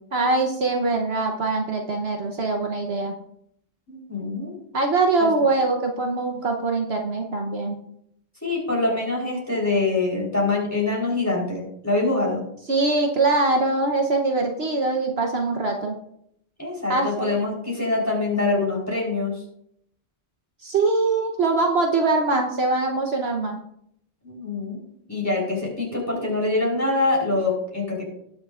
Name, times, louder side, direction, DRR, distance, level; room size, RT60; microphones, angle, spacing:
voice 1, 0.1-3.1 4.7-7.8 12.7-15.9 16.9-17.4 20.6-23.6, right 3 dB, 60° right, 2 dB, 1.2 m, -23 dB
voice 2, 3.9-4.5 5.2-5.3 8.4-12.4 16.6-19.3 24.2-24.8 25.1-28.0, left 2 dB, 10° left, -3 dB, 3.9 m, -24 dB
19.5 x 6.6 x 2.5 m, 0.72 s
omnidirectional pair, 1.3 m